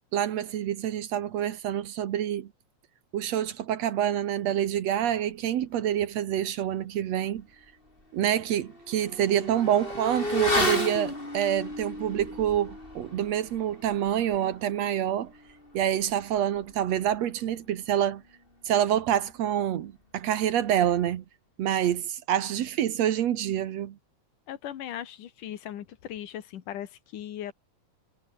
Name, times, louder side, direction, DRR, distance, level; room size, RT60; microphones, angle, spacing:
voice 1, 0.1-2.5 3.1-7.5 8.1-15.3 15.7-18.2 18.7-21.2 21.6-24.0, right 10 dB, 65° right, 2.2 m, -27 dB
Motorcycle / Accelerating revving vroom, 7.4-7.5 7.9-17.9 18.1-18.3, left 1 dB, 15° left, 5.2 m, -34 dB
voice 2, 24.5-27.5, left 11 dB, 85° left, 3.2 m, -38 dB
omnidirectional pair, 3.6 m